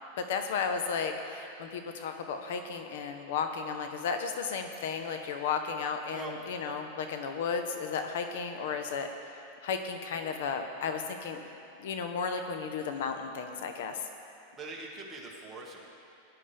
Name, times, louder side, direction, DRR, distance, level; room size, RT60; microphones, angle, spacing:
voice 1, 0.2-9.1 9.6-11.5 11.8-14.1, left 5 dB, 70° left, 6 dB, 1.0 m, -34 dB
voice 2, 14.6-15.9, right 3 dB, 15° right, -3 dB, 1.9 m, -42 dB
18.0 x 10.5 x 3.5 m, 2.6 s
supercardioid pair, 140°, 0 cm